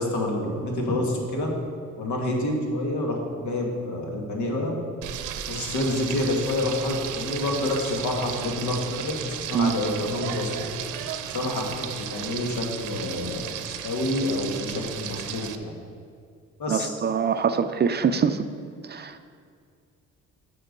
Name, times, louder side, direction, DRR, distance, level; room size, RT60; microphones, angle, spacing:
voice 1, 0.0-1.5 2.0-3.2 3.4-4.7 5.5-10.5 11.2-13.4 13.8-15.7 16.6-16.9, left 1 dB, 70° left, 1 dB, 1.7 m, -28 dB
Frying (food), 5.0-15.6, right 9 dB, 85° right, 0.6 m, -34 dB
voice 2, 16.7-18.5 18.9-19.2, right 6 dB, 35° right, 10 dB, 0.4 m, -24 dB
7.7 x 6.2 x 5.3 m, 2.2 s
cardioid pair, 90°, 30 cm